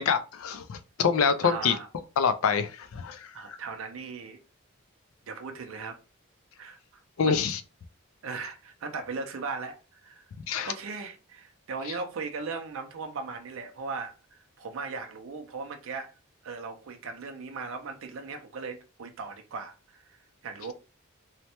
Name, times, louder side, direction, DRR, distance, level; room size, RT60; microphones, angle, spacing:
voice 1, 0.0-1.7 2.2-3.3 7.2-7.6 10.5-10.7, left 6 dB, 80° left, 0.4 m, -26 dB
voice 2, 1.4-1.9 3.3-4.4 5.3-6.0 6.6-6.8 7.2-7.5 8.2-10.3 10.7-16.1 16.4-20.7, right 4 dB, 70° right, 0.4 m, -38 dB
3.1 x 2.1 x 2.8 m
head